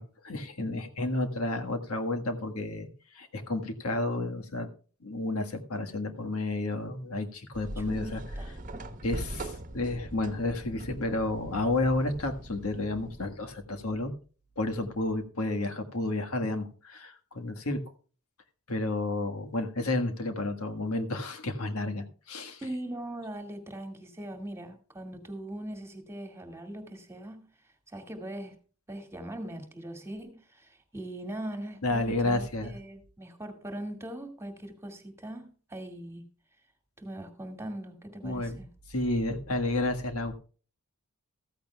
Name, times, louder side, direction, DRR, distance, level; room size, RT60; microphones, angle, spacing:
voice 1, 0.0-2.9 3.1-4.7 5.0-8.2 9.0-14.1 14.6-17.8 18.7-22.6 31.8-32.7 38.2-38.6 38.9-40.3, left 2 dB, 70° left, 1.6 m, -31 dB
sound 1, 7.5-13.3, right 1 dB, 35° right, 1.2 m, -41 dB
voice 2, 7.8-8.6 22.6-27.5 27.9-28.6 28.9-36.2 37.0-38.7, right 1 dB, 10° right, 2.1 m, -40 dB
14.5 x 14.5 x 2.3 m
head